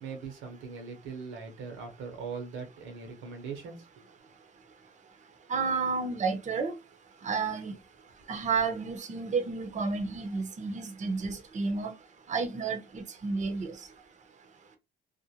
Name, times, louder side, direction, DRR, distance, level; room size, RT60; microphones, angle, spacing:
voice 1, 0.0-4.0, right 5 dB, 90° right, 0.9 m, -41 dB
voice 2, 5.5-6.7 7.2-7.7 8.3-11.9 12.3-13.7, right 4 dB, 35° right, 0.6 m, -31 dB
2.5 x 2.1 x 2.8 m
cardioid pair, 90°, 20 cm